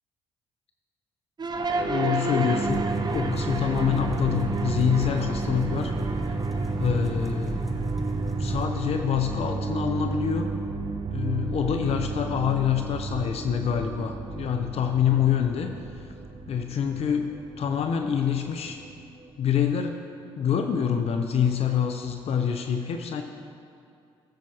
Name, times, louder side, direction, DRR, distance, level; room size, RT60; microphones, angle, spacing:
sound 1, 1.4-19.7, right 3 dB, 35° right, 0.8 m, -31 dB
voice 1, 1.7-2.8 3.1-5.9 6.8-7.7 8.4-10.5 11.1-15.7 16.5-18.8 19.4-20.0 20.4-23.2, left 8 dB, 60° left, 5 dB, 0.7 m, -26 dB
sound 2, 2.6-8.6, right 2 dB, ahead, 1.1 m, -33 dB
16.5 x 7.5 x 2.9 m, 2.4 s
supercardioid pair, 60°, 12 cm